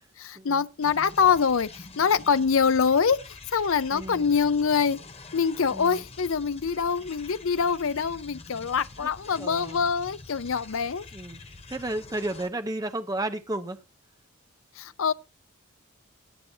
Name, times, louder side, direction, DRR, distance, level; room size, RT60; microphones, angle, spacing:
voice 1, 0.2-3.2 3.5-5.0 5.3-11.0 14.8-15.1, left 6 dB, 65° left, 0.5 m, -24 dB
sound 1, 0.8-12.5, left 3 dB, 25° left, 1.0 m, -46 dB
voice 2, 3.9-4.3 5.7-6.0 9.0-9.1 9.4-9.9 11.1-11.4 11.7-13.8, right 1 dB, 15° right, 0.7 m, -33 dB
16.5 x 9.6 x 2.8 m
head